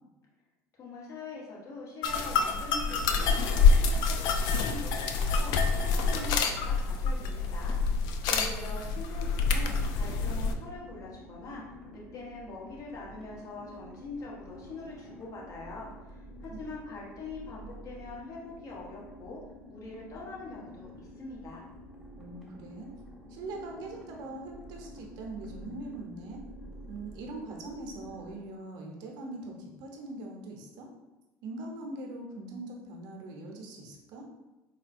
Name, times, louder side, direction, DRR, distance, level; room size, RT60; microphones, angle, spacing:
voice 1, 0.8-11.6 11.9-21.6, left 3 dB, 45° left, -4 dB, 1.2 m, -43 dB
sound 1, 2.0-10.5, left 4 dB, 65° left, 0.4 m, -26 dB
voice 2, 8.4-8.9 16.5-16.6 22.2-22.9 23.3-26.4 26.9-30.9 31.4-34.3, right 2 dB, 65° right, 0 dB, 0.8 m, -42 dB
sound 2, 8.8-28.4, equal, 5° left, 1.1 m, -49 dB
4.2 x 2.2 x 2.6 m, 1.1 s
hypercardioid pair, 75°, 8 cm